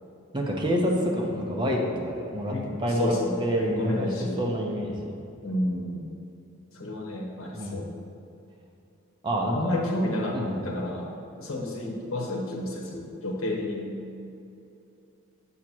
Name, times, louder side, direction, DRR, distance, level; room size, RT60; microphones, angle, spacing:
voice 1, 0.3-5.1 7.5-7.8 9.2-9.8 10.3-10.6, equal, 20° right, -1 dB, 0.7 m, -28 dB
voice 2, 3.0-4.5 5.4-6.1 6.7-7.9 9.5-10.4 10.6-11.1 11.4-14.0, left 1 dB, 85° left, -1 dB, 1.0 m, -30 dB
7.4 x 2.9 x 6.0 m, 2.7 s
head